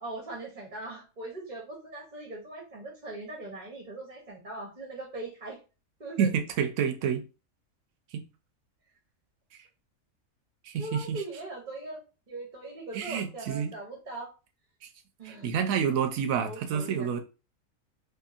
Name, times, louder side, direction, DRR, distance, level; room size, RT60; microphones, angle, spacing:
voice 1, 0.0-5.6 6.0-6.3 10.8-14.3 15.2-15.5 16.4-17.1, right 2 dB, 40° right, -2 dB, 0.8 m, -40 dB
voice 2, 6.2-7.2 8.1-8.2 10.6-11.2 12.9-13.7 15.2-17.2, right 7 dB, 75° right, 7 dB, 0.9 m, -28 dB
2.8 x 2.6 x 2.4 m, 0.31 s
omnidirectional pair, 1.5 m